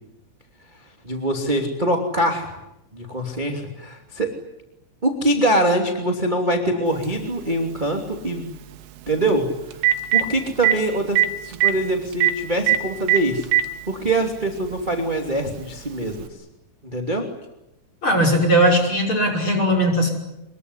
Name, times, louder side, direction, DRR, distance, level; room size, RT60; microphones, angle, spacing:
voice 1, 1.0-2.6 2.9-4.3 5.0-8.5 9.1-9.8 10.1-13.5 13.9-16.3 16.8-17.3, right 1 dB, 15° right, 2 dB, 1.8 m, -23 dB
Telephone, 7.0-7.1 9.3-9.4 9.7-10.2 10.6-10.7 11.2-11.3 11.5-11.7 12.2-12.3 12.7-12.8 13.1-13.7 14.6-14.7 16.2-16.3, right 12 dB, 85° right, 3.8 m, -17 dB
voice 2, 18.0-20.1, equal, 25° left, 2 dB, 6.4 m, -18 dB
25.5 x 22.5 x 9.9 m, 0.90 s
omnidirectional pair, 5.5 m